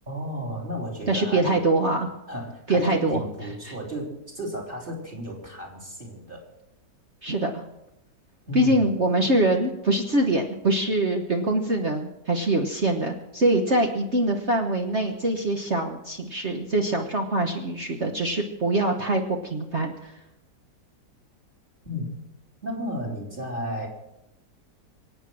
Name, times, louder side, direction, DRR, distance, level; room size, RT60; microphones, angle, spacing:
voice 1, 0.1-1.6 2.3-6.5 8.5-8.8 21.8-22.2 22.6-23.9, equal, 30° right, 0 dB, 4.0 m, -33 dB
voice 2, 1.1-2.1 2.7-3.2 3.6-3.7 7.2-7.6 8.5-20.1, right 1 dB, 45° right, 3 dB, 1.3 m, -24 dB
24.0 x 9.1 x 6.3 m, 0.92 s
omnidirectional pair, 1.9 m